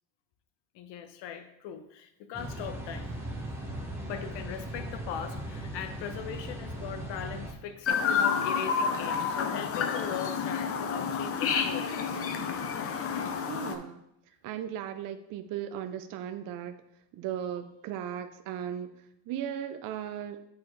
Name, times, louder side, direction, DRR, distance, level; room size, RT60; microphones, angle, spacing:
voice 1, 0.7-3.1 4.0-12.7, left 8 dB, 60° left, 8 dB, 0.9 m, -40 dB
sound 1, 2.3-7.5, right 1 dB, 5° right, 1.1 m, -38 dB
Chirp tweet, 7.9-13.7, left 6 dB, 30° left, 0.6 m, -29 dB
voice 2, 13.5-14.0 14.4-16.8 17.1-20.5, right 10 dB, 45° right, 9 dB, 0.5 m, -37 dB
8.7 x 4.4 x 3.1 m, 0.81 s
supercardioid pair, 110°, 48 cm